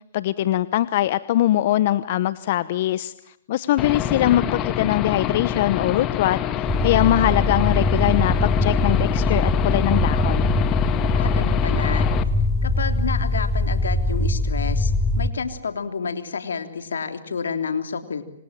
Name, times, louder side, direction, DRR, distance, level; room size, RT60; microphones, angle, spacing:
voice 1, 0.1-3.1 3.5-10.5, left 13 dB, 55° left, 16 dB, 1.0 m, -22 dB
Aircraft / Engine, 3.8-12.2, left 10 dB, 30° left, 2.0 m, -26 dB
sound 1, 6.7-15.3, left 2 dB, ahead, 3.8 m, -22 dB
voice 2, 11.1-12.1 12.6-18.2, left 5 dB, 85° left, 8 dB, 3.4 m, -30 dB
27.5 x 26.5 x 7.5 m, 0.75 s
hypercardioid pair, 125°, 0 cm